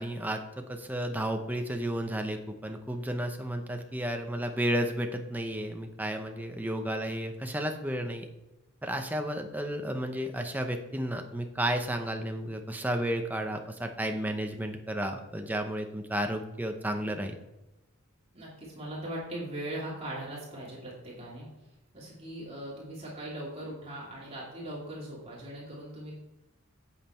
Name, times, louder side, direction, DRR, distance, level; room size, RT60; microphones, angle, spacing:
voice 1, 0.0-8.3 8.8-17.3, right 1 dB, 10° right, 5 dB, 0.7 m, -32 dB
voice 2, 18.3-21.5 21.9-26.1, right 1 dB, 30° right, -6 dB, 2.9 m, -40 dB
8.5 x 7.5 x 4.4 m, 0.98 s
head